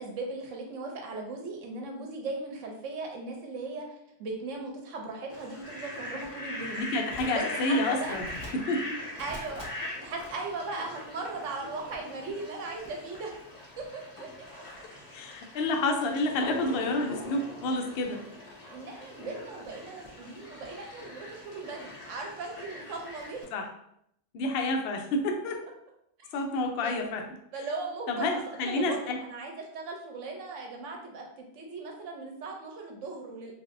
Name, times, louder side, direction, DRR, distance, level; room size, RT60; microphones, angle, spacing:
voice 1, 0.0-3.8 4.2-6.8 7.3-8.2 9.2-13.3 13.8-14.3 18.7-23.4 26.2-26.3 26.8-27.0 27.5-33.5, right 3 dB, 65° right, 1 dB, 0.8 m, -38 dB
Fowl, 5.3-23.4, left 1 dB, 35° left, 0.6 m, -42 dB
voice 2, 6.7-8.3 8.5-8.9 15.1-18.2 23.5-23.7 24.3-25.6 26.3-27.3 28.1-29.2, left 2 dB, 80° left, 3 dB, 0.5 m, -29 dB
3.3 x 2.5 x 2.5 m, 0.75 s
omnidirectional pair, 1.6 m